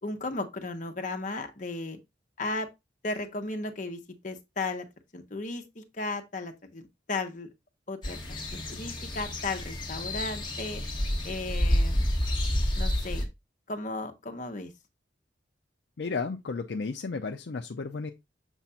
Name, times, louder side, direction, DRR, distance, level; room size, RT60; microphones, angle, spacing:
voice 1, 0.0-2.0 2.4-2.7 3.0-4.8 5.1-7.5 7.9-10.8 11.2-12.1 12.7-13.3 13.7-14.7, left 2 dB, 45° left, 1.1 m, -35 dB
sound 1, 8.0-13.3, left 1 dB, 25° left, 1.3 m, -29 dB
voice 2, 16.0-18.1, left 4 dB, 65° left, 0.5 m, -33 dB
7.1 x 2.5 x 5.6 m
head